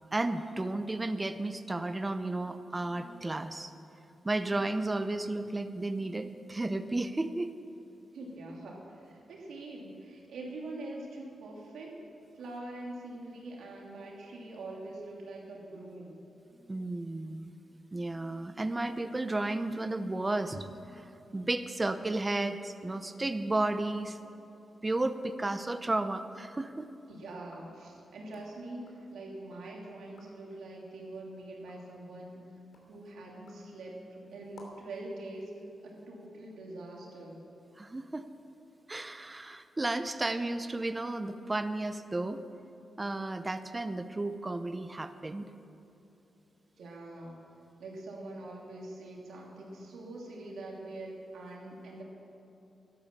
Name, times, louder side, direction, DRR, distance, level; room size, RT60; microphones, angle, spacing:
voice 1, 0.1-3.7 4.2-7.5 16.5-17.5 17.9-24.2 24.8-26.9 37.8-38.2 38.9-42.4 43.0-45.5, right 2 dB, 25° right, 10 dB, 0.7 m, -33 dB
voice 2, 8.1-12.0 12.3-16.2 27.1-32.5 32.9-35.5 35.8-37.4 46.8-47.4 47.8-52.0, right 2 dB, 90° right, -2 dB, 2.9 m, -44 dB
sound 1, 27.4-29.7 30.0-30.5 31.0-35.0, left 2 dB, 80° left, 2.9 m, -60 dB
12.5 x 11.5 x 7.2 m, 2.9 s
cardioid pair, 80°, 0 cm